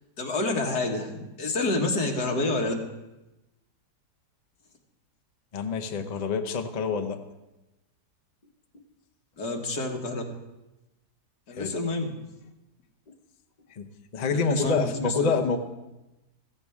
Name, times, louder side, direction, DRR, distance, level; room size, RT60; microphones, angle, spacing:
voice 1, 0.2-2.8 9.4-10.2 11.5-12.2 14.2-15.3, left 2 dB, 70° left, 1 dB, 2.2 m, -28 dB
voice 2, 5.5-7.2 11.5-11.7 13.7-13.9 14.1-15.6, left 4 dB, 40° left, 4 dB, 0.6 m, -27 dB
15.5 x 15.0 x 3.6 m, 0.99 s
omnidirectional pair, 1.8 m